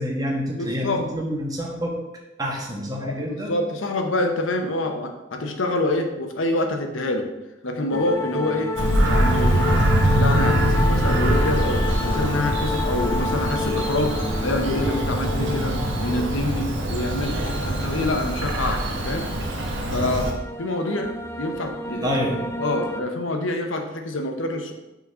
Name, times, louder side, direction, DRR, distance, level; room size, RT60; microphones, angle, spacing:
voice 1, 0.0-1.9 2.4-3.5 22.0-22.5, equal, 20° right, -2 dB, 1.2 m, -27 dB
voice 2, 0.6-1.0 3.0-7.3 7.6-8.7 9.0-17.4 17.6-19.3 19.9-20.3 20.6-22.1 22.6-24.7, left 1 dB, 90° left, 4 dB, 1.0 m, -26 dB
sound 1, 7.9-23.0, left 3 dB, 15° left, 0.4 m, -31 dB
Bird vocalization bird call bird song, 8.8-20.3, right 1 dB, 75° right, 1.1 m, -23 dB
5.5 x 4.0 x 6.1 m, 0.99 s
head